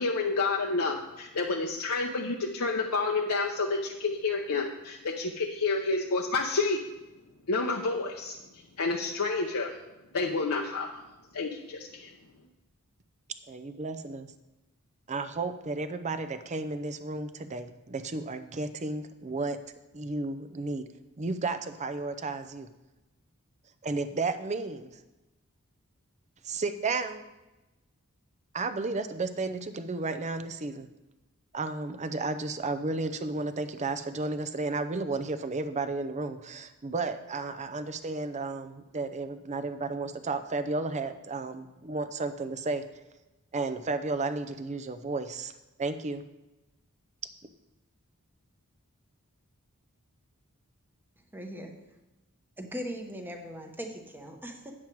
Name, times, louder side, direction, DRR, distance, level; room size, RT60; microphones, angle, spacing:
voice 1, 0.0-6.8 7.5-8.4 8.8-9.7 10.1-10.9 11.3-12.1, left 3 dB, 70° left, 0 dB, 0.8 m, -29 dB
voice 2, 13.5-14.3 15.1-19.6 19.9-20.9 21.2-22.7 23.8-24.9 26.4-27.2 28.5-30.9 31.5-42.8 43.5-45.5 45.8-46.2, right 3 dB, 30° right, 10 dB, 0.6 m, -33 dB
voice 3, 51.3-51.7 52.6-54.7, equal, 10° right, 3 dB, 1.0 m, -39 dB
9.0 x 7.4 x 4.6 m, 1.0 s
head